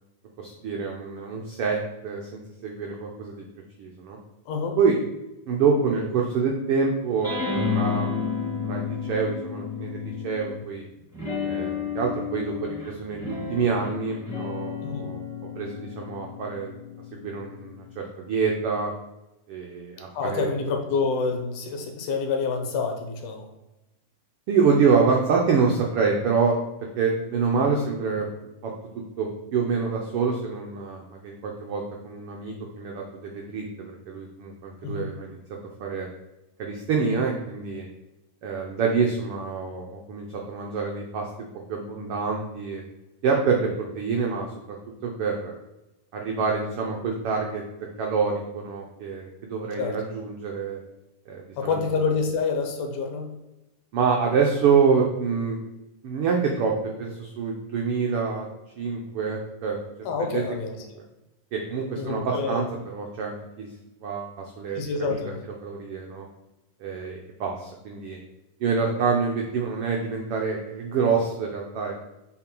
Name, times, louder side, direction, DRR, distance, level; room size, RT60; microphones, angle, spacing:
voice 1, 0.4-3.4 3.8-4.2 4.8-5.0 5.5-7.3 7.7-8.2 8.6-10.8 11.4-15.2 15.6-16.8 17.2-17.8 18.2-18.9 19.5-20.5 24.5-26.7 27.0-28.3 28.6-28.7 29.2-35.4 35.8-36.1 36.6-37.9 38.4-42.9 43.2-43.7 44.0-44.5 45.0-45.5 46.1-47.6 48.0-50.8 51.3-51.8 53.9-55.6 56.0-58.5 58.8-59.8 60.3-60.4 61.5-62.7 62.9-63.7 64.0-65.2 65.6-66.2 66.8-68.2 68.6-72.0, right 5 dB, 85° right, 0 dB, 1.2 m, -26 dB
voice 2, 4.5-4.8 14.8-15.1 20.1-23.5 34.8-35.1 49.8-50.0 51.6-53.3 60.1-60.8 62.0-62.7 64.7-65.4, left 4 dB, 75° left, 4 dB, 2.4 m, -27 dB
sound 1, 7.2-10.6 11.1-17.9, left 5 dB, 5° right, 1.9 m, -31 dB
7.7 x 4.2 x 4.5 m, 0.97 s
omnidirectional pair, 3.7 m